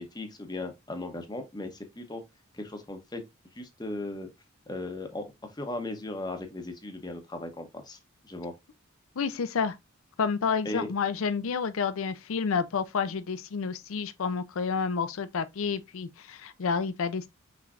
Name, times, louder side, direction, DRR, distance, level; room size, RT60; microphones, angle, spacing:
voice 1, 0.0-2.2 2.5-3.2 3.5-4.3 4.7-8.0 8.2-8.5 10.6-10.9, left 2 dB, 20° left, 0.8 m, -37 dB
voice 2, 9.2-9.8 10.2-17.3, left 5 dB, 75° left, 0.5 m, -29 dB
5.8 x 3.2 x 2.4 m
head